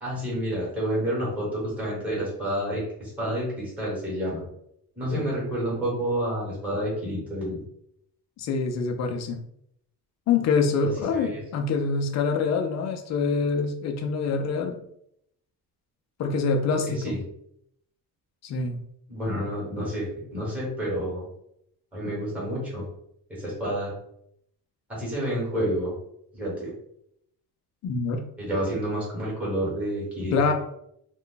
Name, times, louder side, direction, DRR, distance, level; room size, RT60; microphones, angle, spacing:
voice 1, 0.0-4.4 5.0-7.6 11.1-11.4 16.9-17.2 19.1-21.3 21.9-22.9 23.3-23.9 24.9-26.0 26.3-26.7 28.4-30.3, equal, 5° right, -5 dB, 1.1 m, -29 dB
voice 2, 8.4-9.4 10.3-14.8 16.2-17.2 18.4-18.8 27.8-28.2 30.3-30.5, left 4 dB, 45° left, 4 dB, 0.5 m, -25 dB
2.4 x 2.2 x 3.7 m, 0.73 s
cardioid pair, 155°, 37 cm